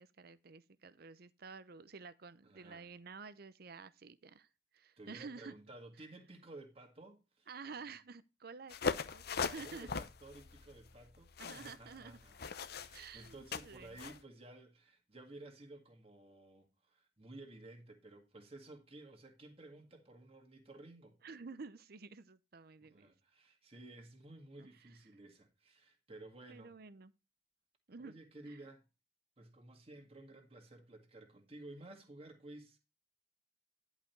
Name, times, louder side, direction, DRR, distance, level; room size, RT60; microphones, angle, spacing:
voice 1, 0.0-4.5 4.7-5.5 7.5-9.9 11.4-12.2 12.9-14.0 21.2-23.1 24.6-24.9 26.5-27.1 27.9-28.1 28.5-28.6, right 4 dB, 55° right, 0.7 m, -51 dB
voice 2, 2.4-2.9 5.0-7.5 9.5-21.2 22.8-26.8 28.0-28.8 29.4-32.8, right 2 dB, 30° right, 2.0 m, -54 dB
sound 1, 8.7-14.2, left 5 dB, 55° left, 0.7 m, -41 dB
11.0 x 5.0 x 4.5 m
head